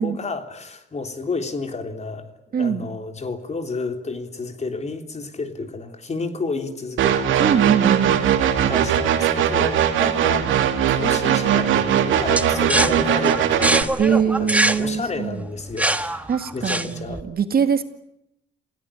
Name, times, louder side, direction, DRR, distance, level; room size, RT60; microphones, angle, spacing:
voice 1, 0.0-2.3 2.6-7.5 8.7-10.5 10.9-17.2, left 3 dB, 35° left, 6 dB, 3.6 m, -31 dB
voice 2, 2.5-2.9 7.4-8.2 14.0-15.5 16.3-17.8, right 7 dB, 50° right, 8 dB, 2.2 m, -22 dB
sound 1, 7.0-13.8, right 9 dB, 80° right, 2.8 m, -20 dB
sound 2, 12.4-17.2, right 1 dB, 5° right, 1.5 m, -23 dB
28.0 x 17.0 x 10.0 m, 0.81 s
cardioid pair, 90°, 20 cm